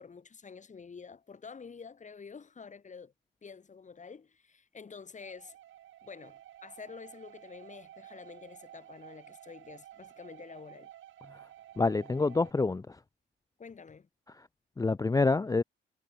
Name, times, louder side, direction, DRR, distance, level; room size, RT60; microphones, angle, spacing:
voice 1, 0.0-3.1 3.4-5.6 6.0-10.9 13.6-14.1, left 5 dB, 40° left, 7.1 m, -48 dB
sound 1, 5.2-12.5, right 12 dB, 75° right, 6.9 m, -53 dB
voice 2, 11.8-13.0 14.8-15.6, left 3 dB, 15° left, 0.7 m, -27 dB
cardioid pair, 90°, 20 cm